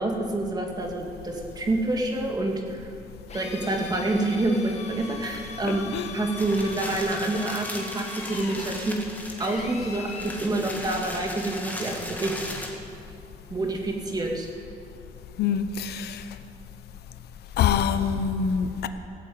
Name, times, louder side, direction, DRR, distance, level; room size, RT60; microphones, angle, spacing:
voice 1, 0.0-2.9 3.3-9.0 9.4-12.4 13.5-14.5, right 2 dB, 25° right, 1 dB, 2.2 m, -27 dB
Drill, 3.3-10.4, left 5 dB, 40° left, 1.8 m, -41 dB
voice 2, 5.6-6.1 15.4-16.2 17.6-18.9, left 7 dB, 80° left, 10 dB, 0.8 m, -25 dB
sound 1, 6.4-12.7, left 1 dB, 10° left, 2.0 m, -37 dB
17.0 x 7.6 x 8.6 m, 3.0 s
cardioid pair, 120°, 16 cm